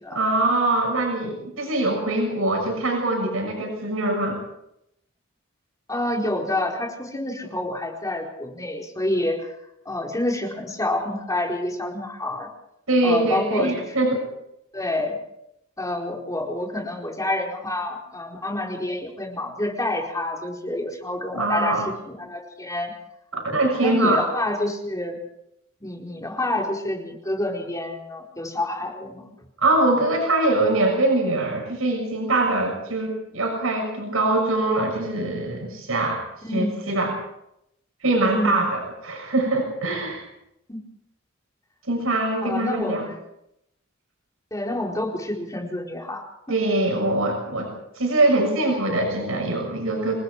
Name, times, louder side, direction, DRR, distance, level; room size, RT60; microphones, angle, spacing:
voice 1, 0.1-4.4 12.9-14.3 21.3-21.9 23.3-24.2 29.6-36.2 36.5-37.2 38.0-40.2 41.9-43.1 46.5-47.7 47.9-50.1, right 2 dB, 90° right, 1 dB, 6.6 m, -23 dB
voice 2, 5.9-9.5 9.8-12.5 13.0-13.8 14.7-15.2 15.8-22.9 23.5-25.2 25.8-29.3 36.4-36.7 38.3-38.6 40.7-40.8 42.4-43.1 44.5-46.6, left 1 dB, 15° left, 0 dB, 4.5 m, -28 dB
28.0 x 19.0 x 4.8 m, 0.80 s
head